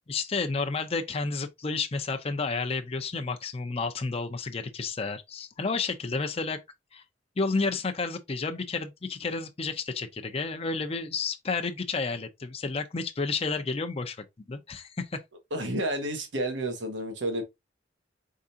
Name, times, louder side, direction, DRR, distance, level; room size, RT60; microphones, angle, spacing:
voice 1, 0.1-6.6 6.9-7.0 7.4-15.2, left 4 dB, 35° left, 0.6 m, -31 dB
voice 2, 15.5-17.4, right 1 dB, 85° right, 1.3 m, -30 dB
4.6 x 3.7 x 2.7 m
head